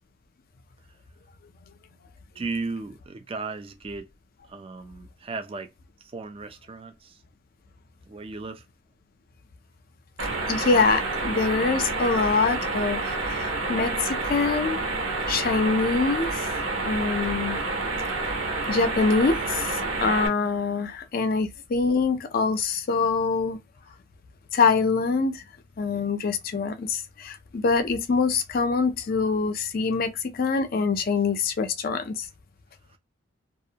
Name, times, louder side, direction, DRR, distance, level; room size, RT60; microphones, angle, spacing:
voice 1, 2.3-4.1 4.5-5.7 6.0-7.2 8.1-8.7 32.9-33.0, right 3 dB, 25° right, 0.3 m, -35 dB
voice 2, 10.2-14.8 15.3-16.6 16.8-17.6 18.2-18.3 18.7-23.6 24.5-25.4 25.8-32.3, left 4 dB, 45° left, 0.4 m, -25 dB
sound 1, 10.2-20.3, right 3 dB, 75° right, 0.9 m, -29 dB
2.3 x 2.1 x 2.7 m
head